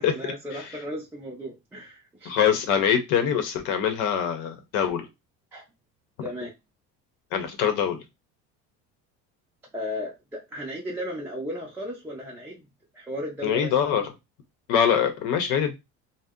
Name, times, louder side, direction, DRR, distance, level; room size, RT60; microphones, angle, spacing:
voice 1, 0.0-2.3 5.5-5.6 6.2-6.5 9.7-13.7, equal, 10° right, 0.4 m, -35 dB
voice 2, 2.3-5.1 7.3-8.0 13.4-14.1 14.7-15.7, left 8 dB, 75° left, 0.8 m, -23 dB
2.6 x 2.1 x 3.5 m
cardioid pair, 170°, 31 cm